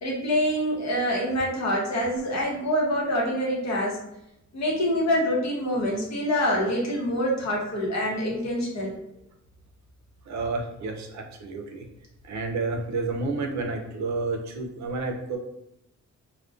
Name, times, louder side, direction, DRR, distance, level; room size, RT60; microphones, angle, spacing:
voice 1, 0.0-4.0 4.5-8.9, equal, 65° left, -3 dB, 0.8 m, -26 dB
voice 2, 10.3-11.9 12.2-15.4, right 3 dB, 70° right, 3 dB, 0.5 m, -30 dB
2.5 x 2.1 x 2.3 m, 0.84 s
wide cardioid pair, 170°, 29 cm